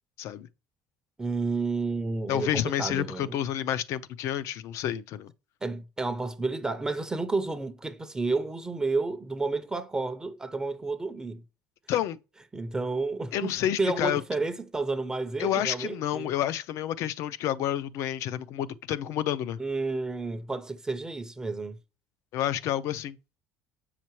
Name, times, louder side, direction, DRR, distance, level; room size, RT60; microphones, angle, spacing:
voice 1, 1.2-3.4 5.6-11.4 12.5-16.3 19.6-21.8, right 3 dB, 15° right, 0.5 m, -31 dB
voice 2, 2.3-5.3 11.9-12.2 13.3-14.2 15.4-19.6 22.3-23.2, left 11 dB, 65° left, 0.5 m, -29 dB
7.5 x 5.7 x 3.1 m
cardioid pair, 130°, 5 cm